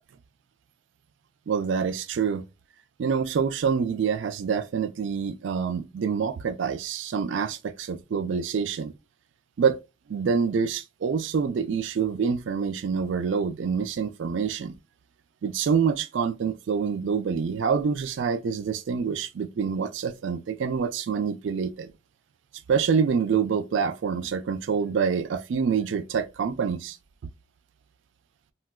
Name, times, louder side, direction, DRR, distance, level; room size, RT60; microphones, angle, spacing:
voice 1, 1.5-2.4 3.0-8.9 9.6-9.8 10.1-14.8 15.4-21.9 22.7-27.0, right 6 dB, 75° right, 0.3 m, -26 dB
3.8 x 2.2 x 2.2 m
head